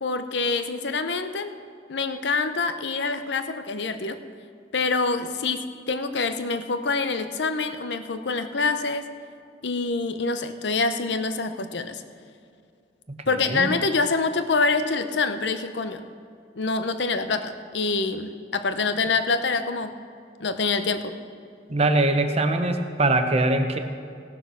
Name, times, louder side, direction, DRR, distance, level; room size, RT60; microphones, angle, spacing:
voice 1, 0.0-1.5 1.9-4.2 4.7-9.1 9.6-12.0 13.3-16.0 16.6-19.9 20.4-21.1, left 4 dB, 65° left, 9 dB, 0.7 m, -26 dB
voice 2, 13.1-13.7 21.7-23.8, right 2 dB, 35° right, 7 dB, 0.8 m, -22 dB
17.0 x 6.9 x 6.2 m, 2.4 s
head